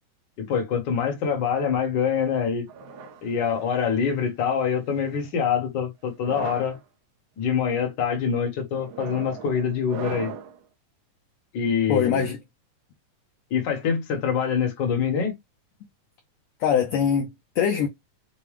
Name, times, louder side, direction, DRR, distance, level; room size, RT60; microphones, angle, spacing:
voice 1, 0.4-2.7 3.2-6.8 7.4-10.3 11.5-12.3 13.5-15.4, left 7 dB, 50° left, 1.4 m, -25 dB
sound 1, 2.7-4.1 4.9-5.3 6.1-6.8 7.5-7.8 8.7-10.6, right 6 dB, 75° right, 2.1 m, -38 dB
voice 2, 11.9-12.4 16.6-17.9, left 8 dB, 75° left, 1.6 m, -23 dB
6.7 x 2.2 x 3.3 m
omnidirectional pair, 3.9 m